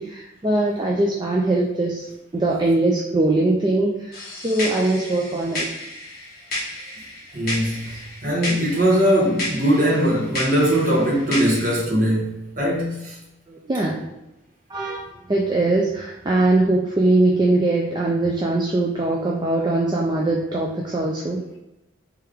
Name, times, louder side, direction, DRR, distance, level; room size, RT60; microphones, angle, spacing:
voice 1, 0.0-2.0 2.3-5.7 13.5-14.1 14.7-21.6, right 2 dB, 20° right, -2 dB, 0.3 m, -21 dB
sound 1, 4.1-11.8, left 1 dB, 45° left, 1.4 m, -32 dB
voice 2, 7.3-13.1, equal, 40° right, -4 dB, 1.3 m, -20 dB
3.3 x 3.3 x 3.5 m, 0.93 s
head